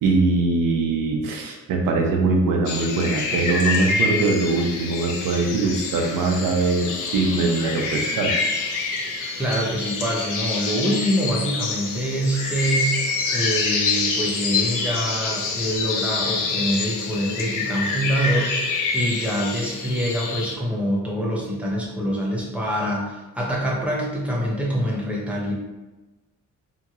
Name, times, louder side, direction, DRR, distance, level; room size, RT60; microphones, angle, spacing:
voice 1, 0.0-8.3, right 3 dB, 75° right, 2 dB, 0.6 m, -22 dB
sound 1, 2.7-20.6, left 4 dB, 65° left, 0.5 m, -26 dB
voice 2, 9.4-25.5, equal, 5° right, -4 dB, 0.6 m, -25 dB
2.8 x 2.7 x 2.4 m, 1.1 s
cardioid pair, 135°, 33 cm